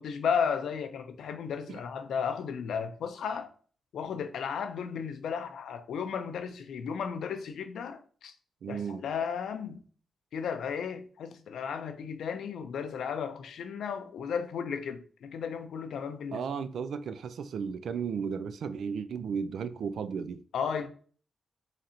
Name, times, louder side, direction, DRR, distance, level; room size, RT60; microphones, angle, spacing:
voice 1, 0.0-3.5 3.9-8.3 8.7-9.8 10.3-16.4 20.5-20.9, left 7 dB, 90° left, 0.4 m, -34 dB
voice 2, 8.6-9.1 16.3-20.4, right 6 dB, 80° right, 0.3 m, -34 dB
3.9 x 3.2 x 2.7 m
cardioid pair, 95°, 0 cm